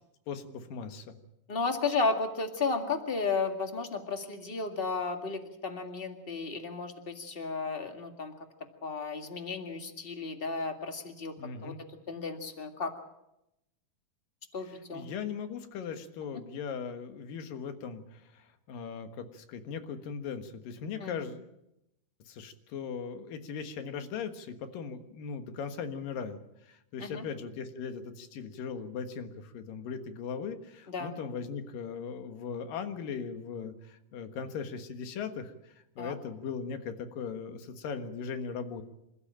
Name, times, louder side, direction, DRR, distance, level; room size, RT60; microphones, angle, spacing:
voice 1, 0.3-1.2 11.4-11.8 14.7-21.4 22.3-26.4 26.7-38.8, left 6 dB, 70° left, 8 dB, 3.1 m, -39 dB
voice 2, 1.5-8.3 8.8-11.3 11.6-11.7 12.1-12.9 14.5-15.0 21.0-21.2 27.0-27.2 30.9-31.1 36.0-36.1, left 4 dB, 25° left, 5 dB, 1.3 m, -33 dB
27.5 x 13.0 x 8.8 m, 0.86 s
omnidirectional pair, 4.2 m